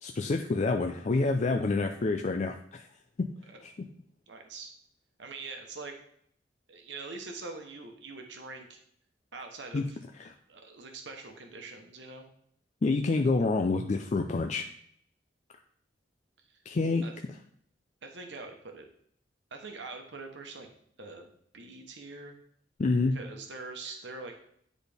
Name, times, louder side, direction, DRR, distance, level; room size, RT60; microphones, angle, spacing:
voice 1, 0.0-2.8 3.2-3.3 3.6-3.7 9.7-9.8 10.2-10.3 12.8-14.6 16.7-17.0 22.8-23.2, left 3 dB, 40° left, 4 dB, 0.4 m, -27 dB
voice 2, 4.3-4.7 5.2-6.0 6.7-8.8 9.3-10.0 10.5-12.3 16.5-16.6 17.0-17.1 18.0-18.9 19.5-20.7 21.0-22.4 23.1-24.3, right 3 dB, 75° right, 4 dB, 1.0 m, -43 dB
9.9 x 4.1 x 3.5 m, 0.66 s
head